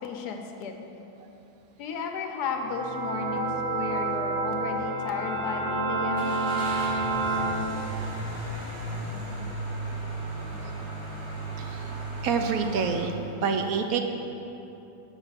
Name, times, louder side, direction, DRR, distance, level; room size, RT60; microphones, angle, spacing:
voice 1, 0.0-0.7 1.8-6.3, left 5 dB, 80° left, 4 dB, 1.3 m, -34 dB
sound 1, 2.5-7.5, right 3 dB, 40° right, 1.3 m, -29 dB
Car / Engine starting, 6.1-13.0, right 1 dB, 90° right, 2.5 m, -35 dB
voice 2, 11.6-11.9 12.2-13.1 13.4-14.0, right 5 dB, 70° right, 5 dB, 1.0 m, -27 dB
7.1 x 5.5 x 5.7 m, 3.0 s
omnidirectional pair, 1.7 m